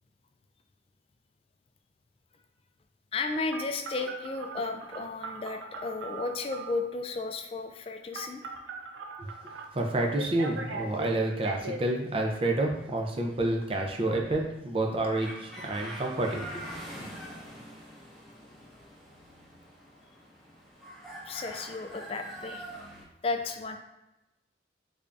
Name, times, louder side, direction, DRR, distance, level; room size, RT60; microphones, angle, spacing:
voice 1, 3.1-8.5 21.3-22.6 23.2-23.8, left 3 dB, 30° left, 5 dB, 0.3 m, -34 dB
Telephone, 3.5-6.9 8.1-9.6 10.2-11.8, right 3 dB, 80° right, 0.4 m, -39 dB
voice 2, 9.2-16.6, right 2 dB, 30° right, 1 dB, 0.5 m, -29 dB
sound 1, 15.1-23.0, equal, ahead, 0.7 m, -44 dB
3.5 x 3.3 x 2.5 m, 0.96 s
head